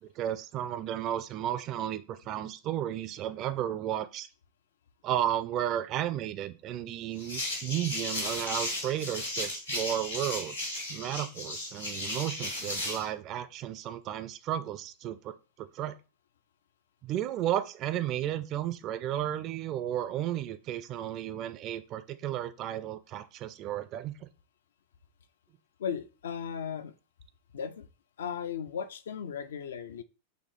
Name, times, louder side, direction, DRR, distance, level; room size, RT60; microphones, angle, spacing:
voice 1, 0.0-4.3 5.0-15.9 17.0-24.3, right 11 dB, 35° right, 0.3 m, -33 dB
sound 1, 7.2-13.1, left 1 dB, 85° left, 1.5 m, -35 dB
voice 2, 25.8-26.9 27.5-27.9 28.2-30.0, left 7 dB, 65° left, 0.4 m, -36 dB
4.1 x 3.2 x 3.2 m
figure-of-eight pair, 90°, 0 cm